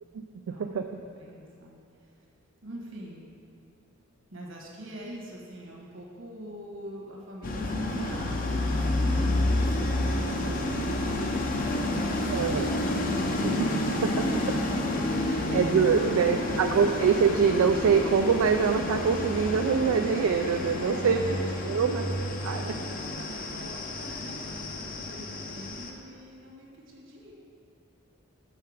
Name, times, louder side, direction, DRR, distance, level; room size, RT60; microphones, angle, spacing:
voice 1, 0.5-2.3 2.6-3.3 4.3-12.5 15.1-15.5 16.0-16.6 20.7-21.9 22.2-27.3, equal, 60° right, -2 dB, 1.4 m, -44 dB
sound 1, 7.4-25.9, left 1 dB, 40° left, 0.6 m, -29 dB
voice 2, 12.3-12.7 13.4-14.2 15.5-21.2 21.7-22.1 22.4-22.6, right 6 dB, 80° right, 5 dB, 0.3 m, -24 dB
6.6 x 5.7 x 4.9 m, 2.4 s
head